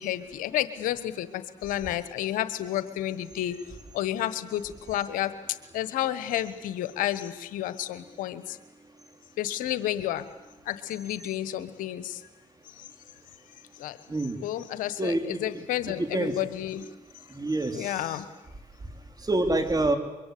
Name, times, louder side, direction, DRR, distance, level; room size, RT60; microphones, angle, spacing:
voice 1, 0.0-3.6 3.9-5.3 5.7-8.6 9.4-10.2 10.7-12.2 13.8-14.0 14.4-16.8 17.7-18.3, left 12 dB, 90° left, 14 dB, 1.2 m, -31 dB
voice 2, 15.0-15.4 16.0-16.3 17.3-18.0 19.2-20.0, right 2 dB, 30° right, 7 dB, 4.0 m, -26 dB
24.5 x 23.0 x 8.5 m, 1.1 s
supercardioid pair, 55°, 14 cm